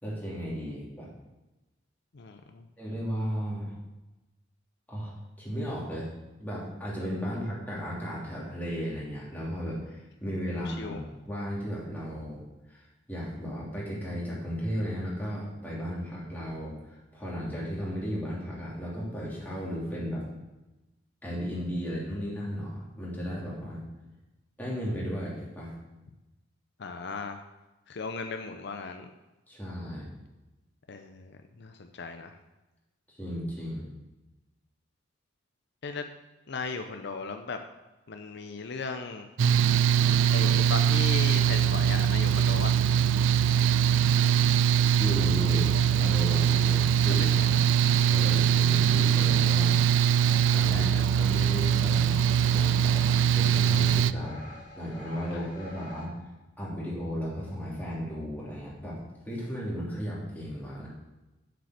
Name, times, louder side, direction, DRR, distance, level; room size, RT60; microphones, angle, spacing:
voice 1, 0.0-1.1 2.8-3.7 4.9-6.1 6.4-12.4 12.7-20.2 21.2-23.8 24.6-25.7 29.5-30.1 33.1-33.9 45.0-47.6 48.1-50.1 50.5-54.4 54.8-56.2 56.6-59.0 59.2-60.9, equal, 10° left, -6 dB, 3.1 m, -35 dB
voice 2, 2.1-2.6 10.5-11.0 26.8-27.4 27.9-29.1 30.9-32.3 35.8-36.1 36.5-37.6 38.1-39.3 40.3-42.8 47.2-47.5 55.3-55.4, left 4 dB, 65° left, 6 dB, 0.6 m, -37 dB
Mechanical fan, 39.4-54.1, right 9 dB, 75° right, 0.3 m, -22 dB
sound 1, 45.6-56.1, left 1 dB, 45° left, 2.3 m, -48 dB
7.7 x 6.8 x 6.5 m, 1.1 s
head